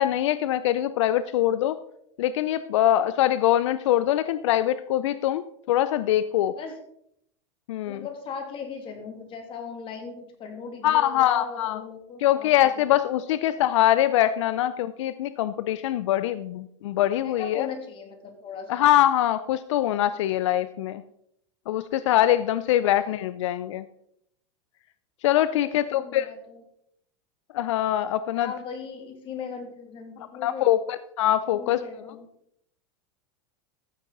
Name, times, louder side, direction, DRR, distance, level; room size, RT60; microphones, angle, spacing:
voice 1, 0.0-1.8 2.2-6.6 7.7-8.1 10.8-11.8 12.2-17.7 18.7-21.0 21.7-23.8 25.2-26.3 27.5-28.5 30.4-31.8, left 12 dB, 80° left, 14 dB, 0.5 m, -23 dB
voice 2, 7.8-12.7 13.4-13.6 17.2-18.8 25.5-26.6 28.3-30.7 31.4-32.3, left 5 dB, 35° left, 5 dB, 2.5 m, -38 dB
14.0 x 7.6 x 3.9 m, 0.73 s
supercardioid pair, 125°, 15 cm